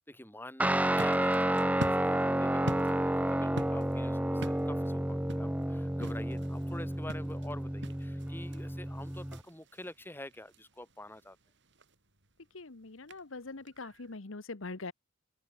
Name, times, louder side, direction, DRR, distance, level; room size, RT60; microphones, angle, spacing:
voice 1, 0.0-11.4, left 1 dB, 10° left, 6.8 m, -47 dB
Guitar, 0.6-9.4, right 1 dB, 5° right, 0.8 m, -30 dB
sound 1, 0.6-14.2, right 1 dB, 55° right, 7.1 m, -46 dB
voice 2, 12.5-14.9, left 3 dB, 65° left, 1.2 m, -43 dB
head